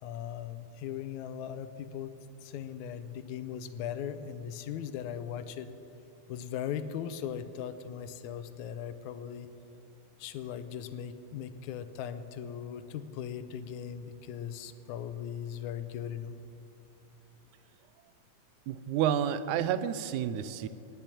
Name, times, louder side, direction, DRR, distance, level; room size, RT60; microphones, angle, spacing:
voice 1, 0.0-2.1 2.4-5.7 6.3-9.5 10.2-16.4, left 9 dB, 80° left, 12 dB, 2.0 m, -39 dB
voice 2, 18.7-20.7, right 9 dB, 85° right, 14 dB, 2.0 m, -30 dB
18.0 x 6.0 x 8.5 m, 2.8 s
omnidirectional pair, 3.4 m